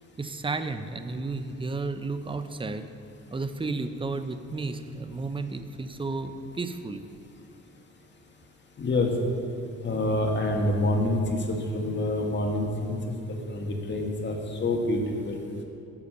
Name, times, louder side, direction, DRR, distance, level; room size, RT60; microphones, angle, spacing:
voice 1, 0.2-2.9 3.3-7.0, right 3 dB, 15° right, 9 dB, 0.7 m, -32 dB
voice 2, 8.8-9.1 9.8-11.2 11.5-13.0 13.5-15.4, left 1 dB, 35° left, 2 dB, 1.9 m, -27 dB
12.0 x 7.0 x 6.6 m, 2.8 s
cardioid pair, 90°, 30 cm